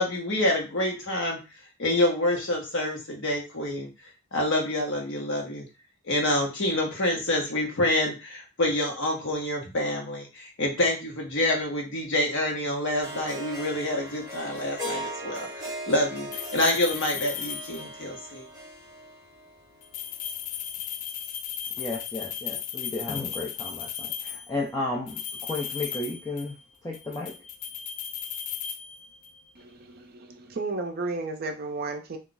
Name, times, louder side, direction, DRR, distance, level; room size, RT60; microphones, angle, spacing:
voice 1, 0.0-1.4 1.8-3.9 4.3-5.6 6.0-18.4, left 1 dB, 55° left, 1 dB, 1.0 m, -27 dB
Harp, 13.0-20.2, equal, 15° right, 1.3 m, -39 dB
sound 1, 16.3-18.1 19.8-24.5 25.1-26.6 26.9-29.4, left 8 dB, 85° left, 0.4 m, -36 dB
voice 2, 21.8-26.6 26.8-27.4, left 2 dB, 15° left, -2 dB, 0.4 m, -33 dB
voice 3, 29.6-32.2, right 3 dB, 45° right, 5 dB, 0.5 m, -33 dB
2.4 x 2.3 x 3.8 m, 0.29 s
head